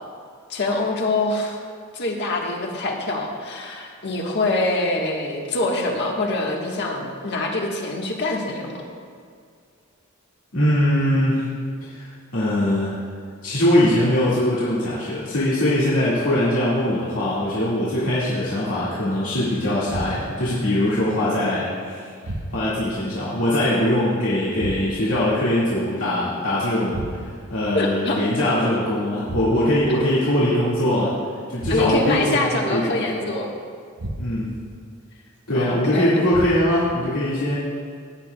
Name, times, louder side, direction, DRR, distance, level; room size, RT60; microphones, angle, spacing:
voice 1, 0.5-1.6 1.9-8.8 27.7-28.3 31.7-33.5 35.5-36.2, left 2 dB, 55° left, 0 dB, 1.4 m, -24 dB
voice 2, 10.5-11.5 11.9-13.0 13.4-22.1 22.5-27.0 27.5-31.1 31.5-33.2 34.2-34.6 35.5-37.6, left 1 dB, 80° left, -9 dB, 2.0 m, -21 dB
sound 1, 19.9-20.5 22.2-22.9 24.6-25.2 26.9-27.5 29.2-29.9 31.6-32.2 34.0-34.6 36.3-36.9, right 1 dB, 75° right, 1.0 m, -33 dB
17.0 x 9.9 x 2.3 m, 2.2 s
head